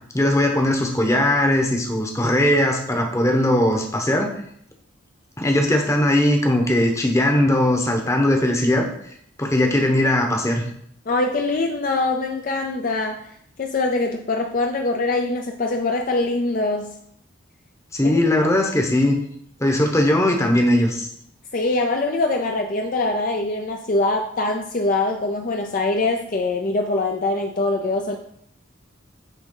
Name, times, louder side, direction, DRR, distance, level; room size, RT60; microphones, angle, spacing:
voice 1, 0.1-4.3 5.4-8.9 9.4-10.6 17.9-19.2 19.6-21.1, left 1 dB, 15° left, 2 dB, 0.9 m, -19 dB
voice 2, 11.1-13.3 13.6-16.9 18.0-18.1 21.5-28.2, left 2 dB, 45° left, 3 dB, 0.4 m, -23 dB
9.0 x 3.6 x 3.8 m, 0.67 s
head